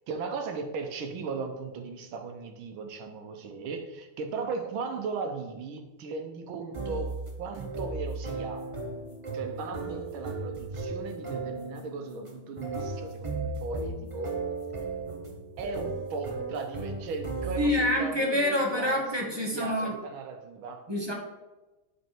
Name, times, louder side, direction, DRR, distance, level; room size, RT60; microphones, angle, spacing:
voice 1, 0.1-8.7 9.3-14.4 15.6-18.9 19.2-20.9, right 4 dB, 80° right, 5 dB, 1.7 m, -37 dB
sound 1, 6.7-17.9, right 3 dB, 40° right, 0.4 m, -36 dB
voice 2, 17.6-20.0 20.9-21.1, left 1 dB, 15° right, -2 dB, 1.0 m, -27 dB
8.3 x 4.5 x 4.5 m, 1.1 s
omnidirectional pair, 2.2 m